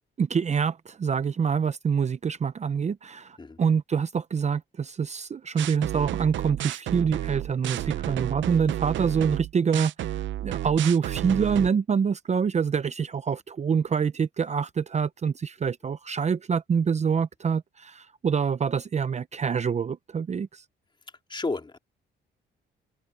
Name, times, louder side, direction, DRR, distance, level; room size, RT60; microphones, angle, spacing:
voice 1, 0.2-20.6, right 6 dB, 35° right, 0.7 m, -26 dB
sound 1, 5.6-11.7, right 13 dB, 70° right, 0.6 m, -31 dB
voice 2, 21.3-21.8, left 3 dB, 25° left, 3.1 m, -31 dB
cardioid pair, 90°, 20 cm